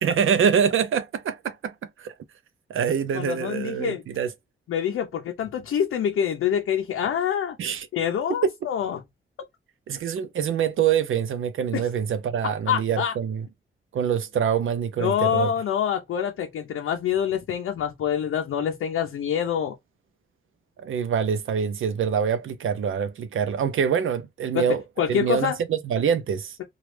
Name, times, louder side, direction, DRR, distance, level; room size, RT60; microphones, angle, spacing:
voice 1, 0.0-2.1 2.7-4.3 7.6-7.9 8.4-8.5 9.9-13.5 13.9-15.5 20.8-24.8 25.1-26.6, right 7 dB, 75° right, 0.5 m, -25 dB
voice 2, 3.1-4.0 4.7-7.6 7.9-9.0 11.7-11.8 12.7-13.1 15.0-19.7 24.5-24.7 25.0-25.6, left 8 dB, 90° left, 0.6 m, -26 dB
2.9 x 2.3 x 3.2 m
wide cardioid pair, 110°, 21 cm